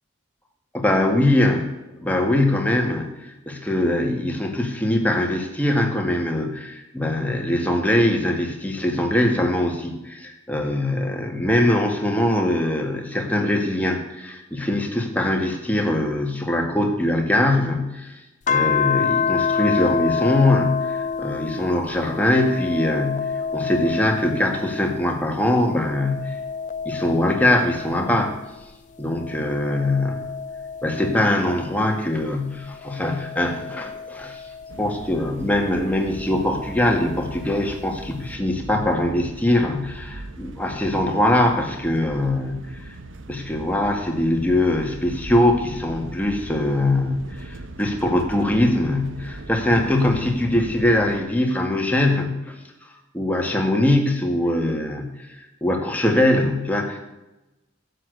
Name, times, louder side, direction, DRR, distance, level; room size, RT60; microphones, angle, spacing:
voice 1, 0.7-1.7 2.0-18.1 18.5-26.3 26.9-28.3 29.0-30.3 30.8-34.4 34.8-42.9 43.3-52.4 53.1-57.0, left 1 dB, 10° left, 2 dB, 1.9 m, -22 dB
sound 1, 18.5-25.2 25.6-28.5 29.1-31.9 32.6-35.1 36.4-37.5, left 6 dB, 40° left, 0.4 m, -28 dB
sound 2, 34.7-51.2, right 2 dB, 85° right, 1.1 m, -39 dB
12.0 x 8.2 x 8.2 m, 1.0 s
head